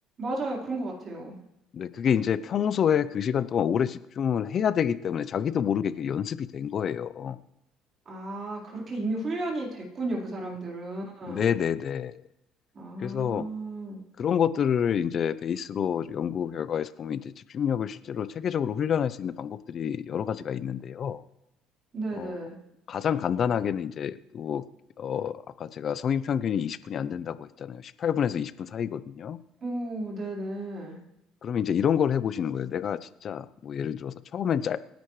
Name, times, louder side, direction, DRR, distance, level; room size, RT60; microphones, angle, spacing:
voice 1, 0.2-1.4 8.1-11.5 12.7-14.0 21.9-22.6 29.6-31.0, right 2 dB, 35° right, -2 dB, 4.4 m, -33 dB
voice 2, 1.7-7.4 11.3-12.2 13.0-13.5 14.2-21.2 22.2-22.4 22.9-24.6 25.0-29.4 31.4-34.8, left 8 dB, 45° left, 15 dB, 0.6 m, -28 dB
27.0 x 10.5 x 3.3 m, 0.87 s
cardioid pair, 125°, 0 cm